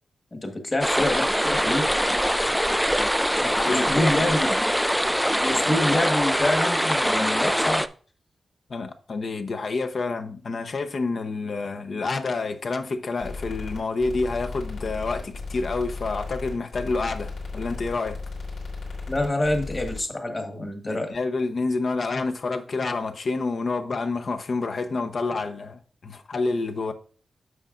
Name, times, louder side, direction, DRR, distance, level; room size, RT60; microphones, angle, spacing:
voice 1, 0.3-1.9 3.6-4.5 5.4-7.9 19.1-21.2, left 1 dB, 25° left, 1.4 m, -26 dB
sound 1, 0.8-7.9, equal, ahead, 0.3 m, -23 dB
voice 2, 3.4-4.1 8.7-18.2 20.5-26.9, left 3 dB, 50° left, 0.8 m, -28 dB
sound 2, 13.2-20.0, left 3 dB, 85° left, 3.3 m, -35 dB
9.5 x 6.6 x 2.5 m
wide cardioid pair, 150°, 0 cm